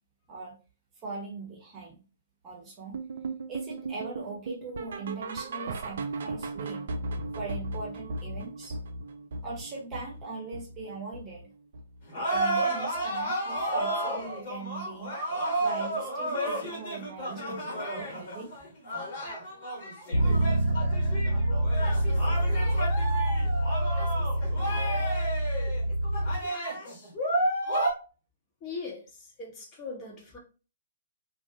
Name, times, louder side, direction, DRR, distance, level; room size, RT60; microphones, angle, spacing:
voice 1, 1.0-2.0 2.4-3.0 3.5-6.9 7.4-8.8 9.4-11.5 12.3-15.1 15.6-18.5, right 3 dB, 20° right, 0.9 m, -40 dB
sound 1, 2.9-12.1 12.3-12.7 13.0-13.1 13.6-13.7 14.2-14.3, right 2 dB, 55° right, 0.3 m, -37 dB
sound 2, 12.1-27.9, right 1 dB, 45° left, 1.2 m, -32 dB
Bass guitar, 20.1-26.4, right 1 dB, 70° left, 1.1 m, -26 dB
voice 2, 28.6-30.4, left 4 dB, 25° left, 0.9 m, -40 dB
2.5 x 2.3 x 2.7 m
figure-of-eight pair, 120°, 0 cm